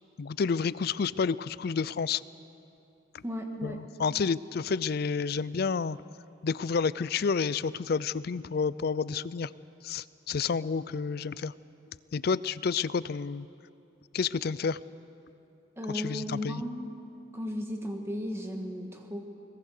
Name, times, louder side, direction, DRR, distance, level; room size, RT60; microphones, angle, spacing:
voice 1, 0.2-2.2 3.6-6.0 6.4-9.5 9.8-11.5 12.1-13.5 14.1-14.8 15.9-16.6, left 5 dB, 50° left, 18 dB, 0.4 m, -30 dB
voice 2, 3.2-3.8 15.8-17.0 17.3-19.3, equal, 15° right, 3 dB, 1.6 m, -35 dB
22.5 x 21.0 x 6.6 m, 2.8 s
head